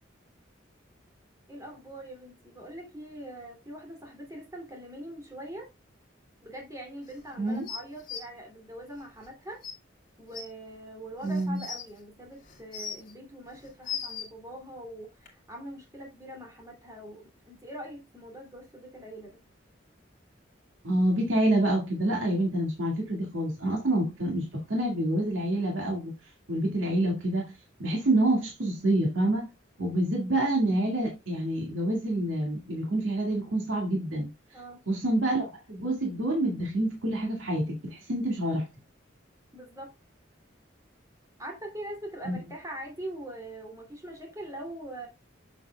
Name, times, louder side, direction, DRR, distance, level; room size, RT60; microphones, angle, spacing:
voice 1, 1.5-5.7 6.4-9.6 10.2-19.4 34.5-34.8 39.5-39.9 41.4-45.1, right 1 dB, 15° right, 2.7 m, -42 dB
sound 1, 7.7-8.2 9.2-9.3 9.6-9.7 10.3-10.4 11.2-11.8 12.5-13.1 13.6-14.3 15.3-15.4, left 7 dB, 45° left, 2.4 m, -36 dB
voice 2, 11.2-11.6 20.8-26.1 26.5-27.5 27.8-29.5 29.8-34.3 34.9-38.7 42.2-42.4, right 1 dB, 90° right, 2.0 m, -27 dB
7.3 x 7.2 x 2.3 m
head